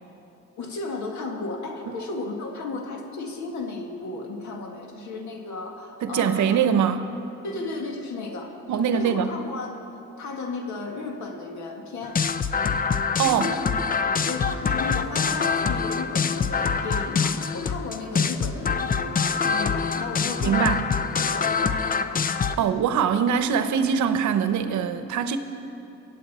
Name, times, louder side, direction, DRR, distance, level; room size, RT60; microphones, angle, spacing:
voice 1, 0.6-6.6 7.4-8.5 8.9-9.8 10.2-12.2 13.3-13.6 14.2-20.8 21.2-22.0, left 3 dB, 70° left, 2 dB, 1.9 m, -34 dB
voice 2, 6.0-7.1 8.7-9.4 13.2-13.5 20.4-20.9 22.6-25.4, right 7 dB, 70° right, 10 dB, 0.8 m, -23 dB
sound 1, 12.0-22.6, left 5 dB, 30° left, 0.5 m, -25 dB
24.0 x 8.2 x 4.3 m, 2.9 s
cardioid pair, 90°, 30 cm